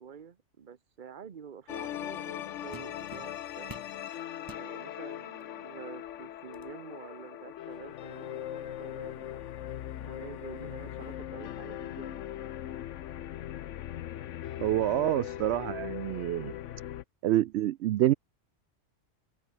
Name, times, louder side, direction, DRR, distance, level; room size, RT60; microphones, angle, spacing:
voice 1, 0.0-3.7 4.5-9.4 10.0-12.3, right 7 dB, 45° right, 1.0 m, -48 dB
sound 1, 1.7-17.0, left 11 dB, 75° left, 1.0 m, -40 dB
sound 2, 2.0-2.2 2.7-4.0 4.4-4.7 5.4-5.5 6.0-6.7, right 2 dB, 15° right, 1.8 m, -49 dB
voice 2, 14.6-16.5 17.2-18.1, right 14 dB, 65° right, 0.8 m, -27 dB
omnidirectional pair, 1.3 m